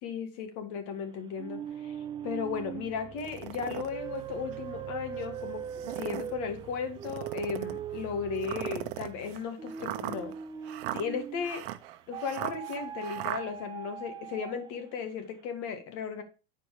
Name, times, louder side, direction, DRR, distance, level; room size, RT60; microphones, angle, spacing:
voice 1, 0.0-2.0 2.2-10.4 10.9-11.6 12.1-16.2, left 6 dB, 50° left, 2.0 m, -36 dB
sound 1, 1.4-11.6 12.1-14.9, right 8 dB, 15° right, 0.5 m, -40 dB
sound 2, 3.2-3.9 4.5-4.6 5.6-6.3 7.0-7.8 8.4-13.4, right 15 dB, 70° right, 0.9 m, -38 dB
9.7 x 4.7 x 4.9 m
supercardioid pair, 150°, 30 cm